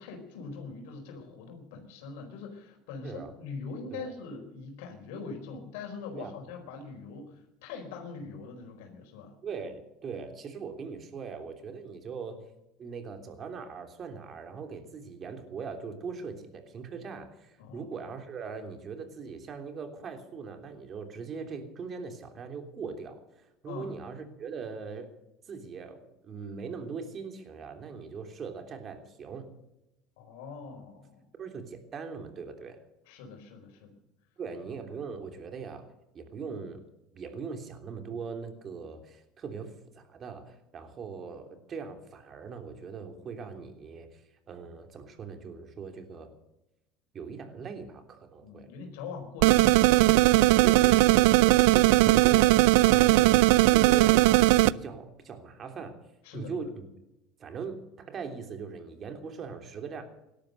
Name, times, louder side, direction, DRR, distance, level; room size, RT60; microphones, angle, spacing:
voice 1, 0.0-9.3 17.6-17.9 23.7-23.9 30.2-31.2 33.0-33.9 48.4-50.5 52.8-53.2 56.2-56.5, left 4 dB, 80° left, 3 dB, 4.5 m, -42 dB
voice 2, 9.4-12.4 12.8-25.1 25.5-29.5 31.4-32.8 34.4-35.9 36.1-36.8 37.1-44.2 44.5-46.3 47.1-48.7 50.6-53.4 53.7-56.0 56.3-56.9 57.4-60.0, right 5 dB, 35° right, 6 dB, 3.2 m, -40 dB
sound 1, 49.4-54.7, right 18 dB, 80° right, 0.5 m, -19 dB
18.0 x 12.5 x 6.6 m, 0.90 s
supercardioid pair, 130°, 0 cm